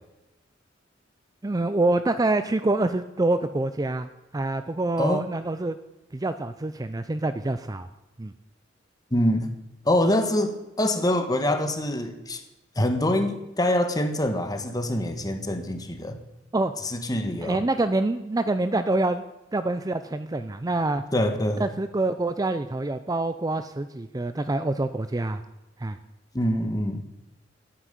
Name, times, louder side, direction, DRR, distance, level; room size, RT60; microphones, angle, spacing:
voice 1, 1.4-4.1 4.3-5.8 6.1-7.9 8.2-8.3 16.5-16.7 17.4-19.2 19.5-21.0 21.6-25.4 25.8-26.0, right 2 dB, 20° right, 11 dB, 0.5 m, -26 dB
voice 2, 9.1-9.5 9.8-12.4 12.7-16.2 16.8-17.6 21.1-21.7 26.3-27.1, left 1 dB, 20° left, 6 dB, 1.5 m, -25 dB
10.0 x 9.6 x 9.1 m, 1.0 s
head